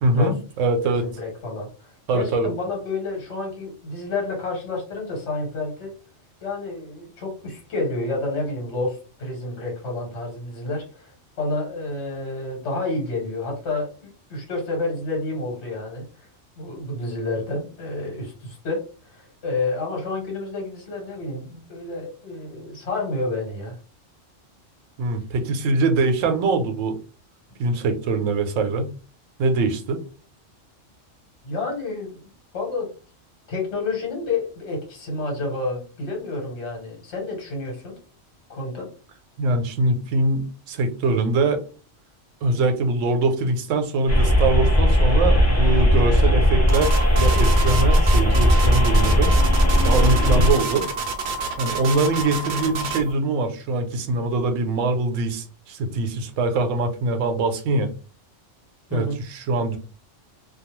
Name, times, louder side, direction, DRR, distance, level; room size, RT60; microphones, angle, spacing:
voice 1, 0.0-1.1 2.1-2.5 25.0-27.0 27.6-28.9 29.4-30.0 39.4-41.6 42.4-49.3 49.8-50.8 51.6-57.9 58.9-59.8, right 3 dB, 80° right, 6 dB, 0.9 m, -23 dB
voice 2, 0.8-5.9 6.4-16.3 16.6-23.8 31.4-32.2 32.5-32.9 33.5-37.9 38.5-38.9 50.3-50.6 58.9-59.2, left 2 dB, 60° left, 0 dB, 1.2 m, -29 dB
sound 1, 44.1-50.5, equal, 25° left, 0.3 m, -17 dB
sound 2, 46.7-53.1, right 4 dB, 55° right, 0.5 m, -28 dB
2.2 x 2.2 x 2.9 m, 0.37 s
omnidirectional pair, 1.3 m